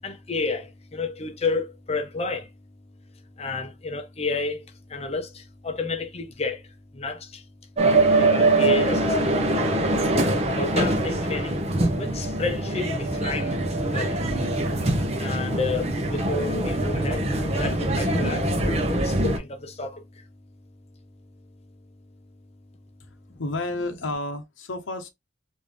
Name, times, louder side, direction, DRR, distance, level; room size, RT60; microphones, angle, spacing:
voice 1, 0.0-2.5 3.4-7.4 8.2-9.4 10.6-11.6 11.9-14.3 15.2-20.3, left 3 dB, 35° left, 0.6 m, -31 dB
sound 1, 7.8-19.4, right 2 dB, 35° right, 0.7 m, -23 dB
voice 2, 23.0-25.1, left 2 dB, 80° left, 0.7 m, -31 dB
3.4 x 2.6 x 3.1 m
head